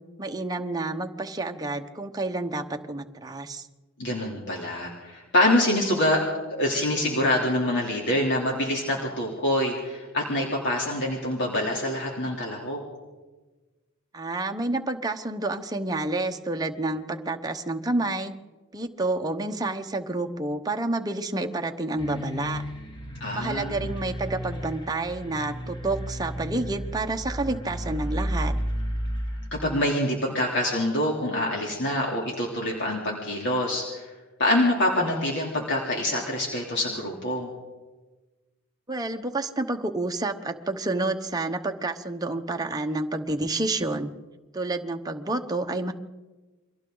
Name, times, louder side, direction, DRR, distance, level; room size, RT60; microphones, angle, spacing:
voice 1, 0.2-3.7 14.1-18.3 18.7-22.6 23.3-28.5 38.9-44.1 44.5-45.9, right 2 dB, 20° right, 4 dB, 1.0 m, -29 dB
voice 2, 4.0-6.2 6.6-12.8 23.2-23.9 29.6-34.1 34.4-37.5, left 1 dB, 55° left, -2 dB, 3.3 m, -25 dB
sound 1, 22.0-29.5, equal, 20° left, 1.9 m, -32 dB
29.0 x 23.0 x 3.9 m, 1.2 s
head